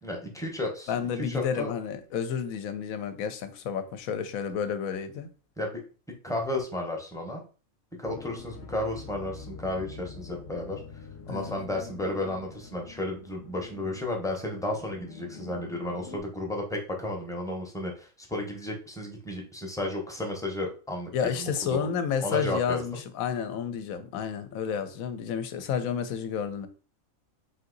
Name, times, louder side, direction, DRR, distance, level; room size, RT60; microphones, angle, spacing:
voice 1, 0.0-1.7 5.6-5.8 6.2-7.4 8.0-10.8 11.3-21.9 22.2-23.0, left 1 dB, 5° left, 0.6 m, -33 dB
voice 2, 0.9-5.3 11.3-11.6 21.1-26.7, left 7 dB, 75° left, 1.0 m, -31 dB
sound 1, 8.0-16.2, left 6 dB, 55° left, 0.9 m, -46 dB
3.9 x 2.8 x 3.8 m
omnidirectional pair, 1.5 m